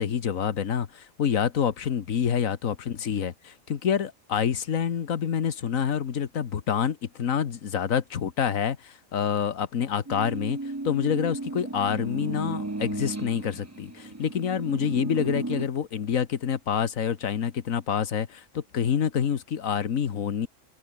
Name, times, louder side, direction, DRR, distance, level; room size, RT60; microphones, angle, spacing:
voice 1, 0.0-10.6 10.8-20.5, left 8 dB, 90° left, 1.7 m, -27 dB
sound 1, 10.1-15.7, right 2 dB, 15° right, 0.9 m, -34 dB
omnidirectional pair, 1.4 m